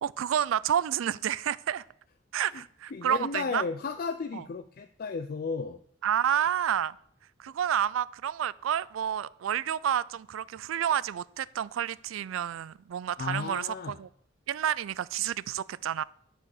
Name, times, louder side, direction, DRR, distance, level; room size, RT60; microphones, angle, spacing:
voice 1, 0.0-1.8 2.3-3.6 4.3-4.4 6.0-7.0 7.4-14.1 14.5-16.0, right 9 dB, 80° right, 0.3 m, -29 dB
voice 2, 2.9-5.8 13.2-14.0, left 4 dB, 50° left, 0.4 m, -34 dB
11.0 x 4.7 x 7.0 m
head